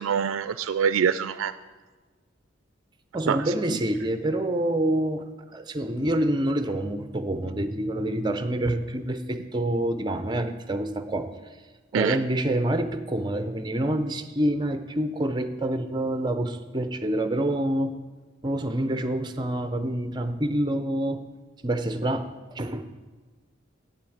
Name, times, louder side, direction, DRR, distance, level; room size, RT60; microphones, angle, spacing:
voice 1, 0.0-1.5 3.3-3.5 11.9-12.2, right 7 dB, 85° right, 13 dB, 0.3 m, -25 dB
voice 2, 3.1-5.2 5.5-11.3 11.9-17.9 18.4-21.2 21.6-22.9, right 1 dB, 20° right, 9 dB, 0.6 m, -27 dB
8.1 x 7.7 x 8.8 m, 1.4 s
head